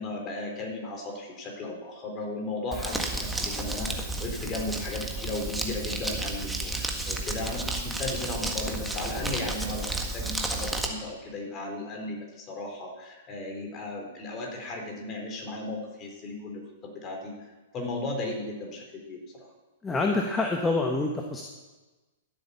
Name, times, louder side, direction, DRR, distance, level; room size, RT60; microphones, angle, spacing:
voice 1, 0.0-17.3 17.7-19.5, left 2 dB, 30° left, 1 dB, 4.0 m, -36 dB
Crumpling crinkling, 2.7-10.9, right 2 dB, 5° right, 1.7 m, -32 dB
voice 2, 19.8-21.4, left 3 dB, 15° left, 1 dB, 1.4 m, -26 dB
13.5 x 8.3 x 6.9 m, 1.2 s
hypercardioid pair, 115°, 0 cm